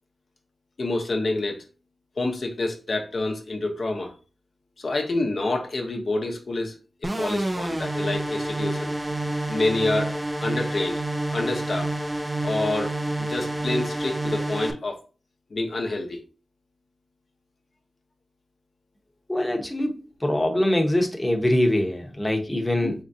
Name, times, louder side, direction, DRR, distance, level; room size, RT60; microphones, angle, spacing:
voice 1, 0.8-1.6 2.2-4.1 4.8-6.7 7.0-8.9 9.5-10.1 10.4-11.0 11.3-11.9 12.4-12.9 13.2-15.0 15.5-16.2 22.8-22.9, left 2 dB, 65° left, 0.7 m, -27 dB
sound 1, 7.0-14.7, right 1 dB, 20° right, 0.4 m, -28 dB
voice 2, 19.3-22.9, left 1 dB, 15° left, 0.8 m, -23 dB
3.7 x 3.1 x 2.6 m
wide cardioid pair, 70°, 0 cm